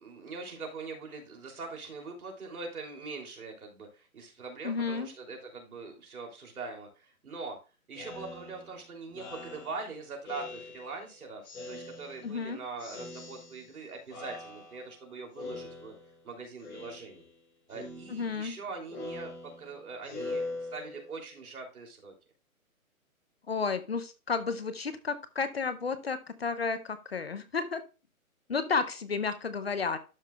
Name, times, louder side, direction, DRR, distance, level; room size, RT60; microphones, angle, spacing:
voice 1, 0.0-7.6 7.9-15.9 16.2-17.3 17.7-22.1, right 4 dB, 80° right, 1 dB, 3.2 m, -42 dB
voice 2, 4.6-5.1 12.2-12.6 18.1-18.5 23.5-27.8 28.5-30.0, left 5 dB, 45° left, 11 dB, 0.7 m, -32 dB
Speech synthesizer, 7.9-11.1 11.4-12.5 12.8-13.8 14.1-15.0 15.4-16.3 16.6-17.4 17.7-21.2, left 2 dB, 70° left, 3.4 m, -43 dB
12.0 x 5.4 x 2.3 m, 0.31 s
hypercardioid pair, 180°, 43 cm